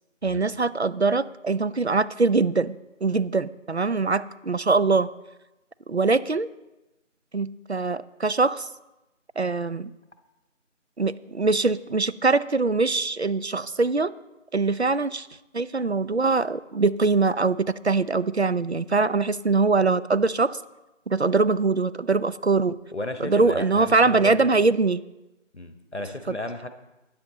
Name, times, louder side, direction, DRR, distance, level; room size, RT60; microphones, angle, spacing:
voice 1, 0.2-2.8 3.0-5.1 5.9-6.5 7.3-8.7 9.4-9.9 11.0-14.1 14.5-15.3 15.5-20.6 21.1-22.8 23.2-25.0 26.3-26.4, right 3 dB, 60° right, 16 dB, 0.5 m, -23 dB
voice 2, 22.9-24.5 25.5-26.7, left 2 dB, 60° left, 8 dB, 1.2 m, -34 dB
12.5 x 9.5 x 4.0 m, 1.0 s
figure-of-eight pair, 180°, 38 cm